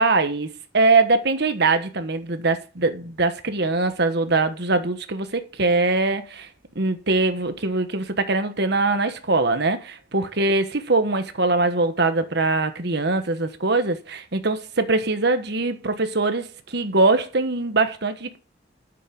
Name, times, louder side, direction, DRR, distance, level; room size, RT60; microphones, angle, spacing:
voice 1, 0.0-6.5 6.7-18.4, right 3 dB, 60° right, 1.4 m, -22 dB
10.5 x 7.6 x 5.4 m
head